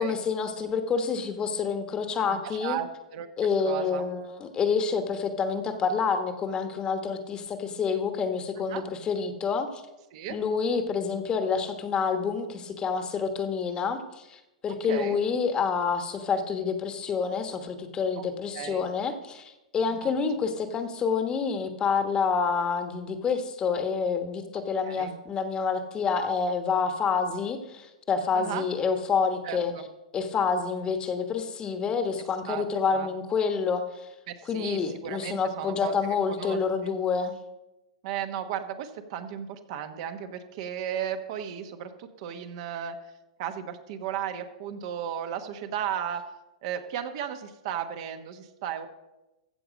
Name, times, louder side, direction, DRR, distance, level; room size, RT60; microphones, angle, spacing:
voice 1, 0.0-2.8 3.4-9.8 10.3-29.7 30.1-34.1 34.4-37.3, left 5 dB, 25° left, 7 dB, 1.2 m, -28 dB
voice 2, 2.3-3.3 3.6-4.0 8.7-8.8 10.1-10.4 14.7-15.2 18.2-18.3 18.5-18.9 19.9-20.1 24.5-25.2 28.3-28.7 29.4-29.8 32.5-32.6 32.9-33.1 34.3-36.9 38.0-43.0 43.4-46.2 46.6-48.9, right 9 dB, 55° right, 8 dB, 1.1 m, -35 dB
14.5 x 6.9 x 5.1 m, 1.0 s
hypercardioid pair, 125°, 4 cm